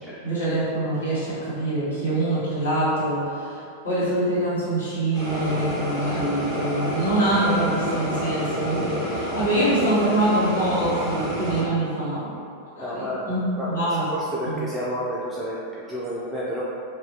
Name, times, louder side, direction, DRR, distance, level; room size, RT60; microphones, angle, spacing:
voice 1, 0.2-12.3 12.8-14.1 14.4-14.6, right 1 dB, 75° left, -12 dB, 1.0 m, -24 dB
sound 1, 5.1-11.6, equal, 30° left, 0.8 m, -29 dB
voice 2, 12.8-16.6, equal, 5° right, -8 dB, 0.3 m, -31 dB
2.4 x 2.2 x 2.6 m, 2.4 s
figure-of-eight pair, 90°, 0 cm